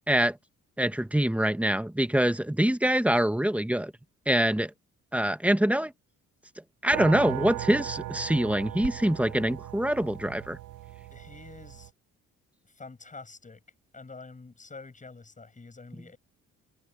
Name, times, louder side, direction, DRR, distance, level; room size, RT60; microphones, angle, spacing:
voice 1, 0.1-0.4 0.8-3.9 4.3-4.7 5.1-5.9 6.8-10.6, right 1 dB, 5° right, 1.4 m, -25 dB
sound 1, 6.9-11.9, right 15 dB, 80° right, 1.0 m, -38 dB
voice 2, 11.1-11.9 12.6-13.6 13.9-16.2, left 3 dB, 25° left, 7.8 m, -47 dB
cardioid pair, 90°, 30 cm